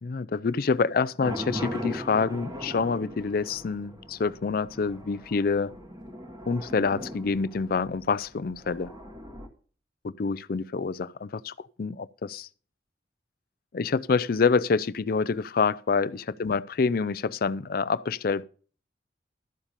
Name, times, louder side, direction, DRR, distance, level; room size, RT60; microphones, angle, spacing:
voice 1, 0.0-5.7 6.5-8.9 10.0-12.5 13.7-18.4, left 5 dB, 55° left, 0.4 m, -27 dB
sound 1, 1.2-9.5, equal, 25° right, 1.9 m, -39 dB
12.5 x 7.3 x 5.2 m
head